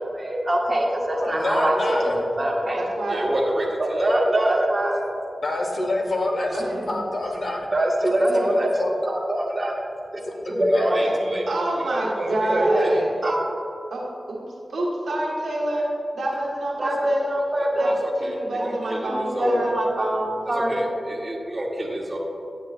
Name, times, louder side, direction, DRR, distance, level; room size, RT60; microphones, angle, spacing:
voice 1, 0.0-2.8 3.1-5.0 7.7-8.7 9.0-9.8 10.5-11.4 11.9-12.9 13.2-13.4 16.8-18.3 18.6-22.2, right 1 dB, 40° right, -1 dB, 1.4 m, -24 dB
voice 2, 1.2-2.2 5.4-7.7 8.4-8.9 10.2-10.9, left 2 dB, 65° left, 1 dB, 1.1 m, -26 dB
voice 3, 2.7-3.3 6.5-7.0 11.0-11.1 11.5-13.1 13.9-14.4 14.7-17.3 17.8-17.9 18.2-19.7, right 1 dB, 90° right, -3 dB, 1.3 m, -28 dB
9.9 x 8.1 x 2.4 m, 2.7 s
cardioid pair, 55°, 0 cm